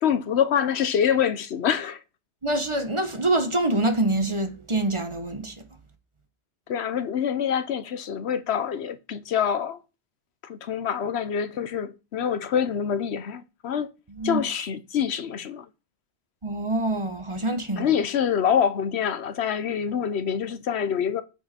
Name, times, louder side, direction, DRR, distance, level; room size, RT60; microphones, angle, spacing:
voice 1, 0.0-2.0 6.7-9.8 10.4-13.9 14.2-15.7 17.8-21.2, left 8 dB, 85° left, 1.0 m, -26 dB
voice 2, 2.4-5.5 14.1-14.4 16.4-17.9, right 2 dB, 30° right, 1.1 m, -25 dB
8.8 x 5.5 x 4.2 m
omnidirectional pair, 1.1 m